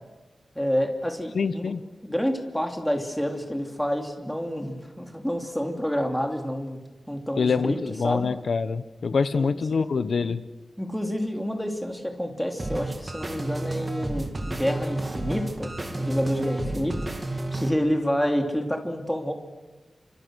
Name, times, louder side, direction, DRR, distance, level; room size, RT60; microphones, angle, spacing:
voice 1, 0.5-1.7 2.0-6.8 7.1-7.8 8.0-8.3 9.3-9.9 10.8-19.3, equal, 5° left, 3 dB, 3.0 m, -28 dB
voice 2, 1.3-1.8 7.4-10.4, left 5 dB, 60° left, 13 dB, 1.1 m, -25 dB
sound 1, 12.6-17.7, right 2 dB, 25° right, 2.5 m, -31 dB
29.0 x 26.0 x 6.4 m, 1.2 s
wide cardioid pair, 155°, 0 cm